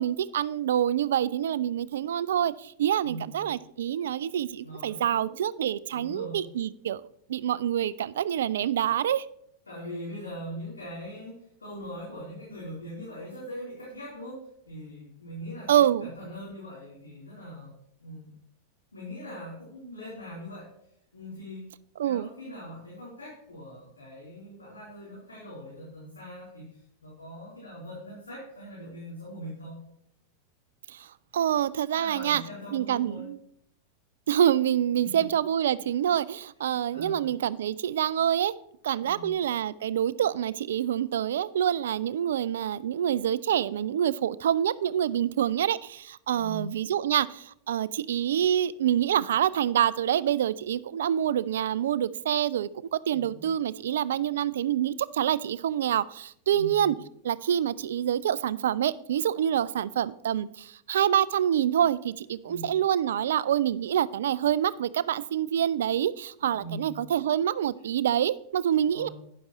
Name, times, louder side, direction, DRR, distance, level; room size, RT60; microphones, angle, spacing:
voice 1, 0.0-7.0 7.3-9.3 15.7-16.1 22.0-22.3 30.9-31.1 31.3-32.4 32.7-33.4 34.3-38.5 38.8-56.9 57.2-69.1, right 10 dB, 60° right, 19 dB, 0.3 m, -26 dB
voice 2, 3.0-3.4 4.6-5.3 5.9-6.5 9.7-17.7 18.0-18.3 18.9-20.7 21.1-21.7 22.0-29.8 31.9-33.3 35.0-35.3 36.6-37.3 39.0-39.3 46.2-46.8 53.1-53.5 56.5-56.9 62.4-62.7 66.4-67.0 68.8-69.1, equal, 75° left, -6 dB, 3.4 m, -41 dB
11.5 x 9.5 x 3.0 m, 0.73 s
figure-of-eight pair, 90°, 0 cm